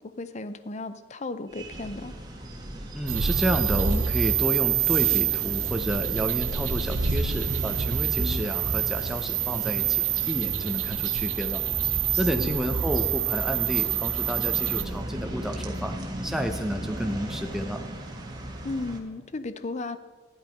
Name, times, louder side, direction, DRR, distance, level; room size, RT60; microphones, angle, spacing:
voice 1, 0.0-2.1 8.2-8.4 12.1-12.6 18.6-20.0, left 3 dB, 35° left, 12 dB, 0.5 m, -35 dB
sound 1, 1.5-19.0, right 1 dB, 20° right, 1.6 m, -37 dB
voice 2, 2.9-11.6 12.2-15.9 16.2-17.8, equal, ahead, 5 dB, 0.8 m, -30 dB
sound 2, 3.1-14.8, right 8 dB, 75° right, 0.9 m, -26 dB
12.5 x 10.5 x 5.2 m, 1.5 s
head